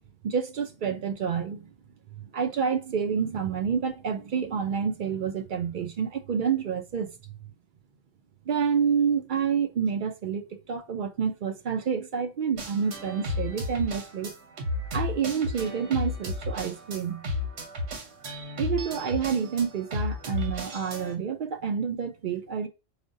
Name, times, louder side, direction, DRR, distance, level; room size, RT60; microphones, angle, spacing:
voice 1, 0.2-1.7 2.2-7.3 8.5-14.3 14.9-17.2 18.6-22.7, right 7 dB, 55° right, 0.6 m, -28 dB
sound 1, 12.6-21.1, left 2 dB, 80° right, 1.1 m, -33 dB
4.9 x 2.1 x 2.6 m
omnidirectional pair, 1.1 m